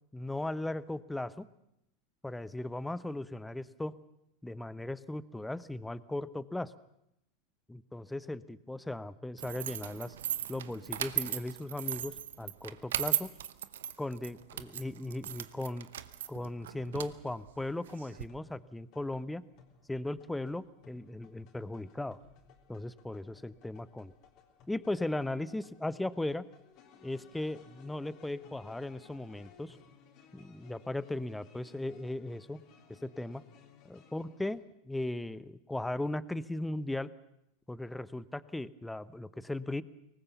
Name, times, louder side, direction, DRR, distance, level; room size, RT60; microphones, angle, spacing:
voice 1, 0.1-1.5 2.2-3.9 4.4-6.7 7.7-10.1 10.5-13.3 14.0-15.9 16.3-19.4 19.9-22.2 22.7-24.1 24.7-26.5 27.0-29.8 30.3-32.6 32.9-33.4 33.9-34.6 34.9-37.1 37.7-39.8, left 1 dB, 5° left, 18 dB, 0.9 m, -37 dB
sound 1, 9.4-18.2, right 11 dB, 70° right, 0.8 m, -37 dB
sound 2, 17.6-34.5, left 6 dB, 50° left, 3.4 m, -61 dB
23.5 x 19.5 x 6.9 m, 0.79 s
figure-of-eight pair, 85°, 0 cm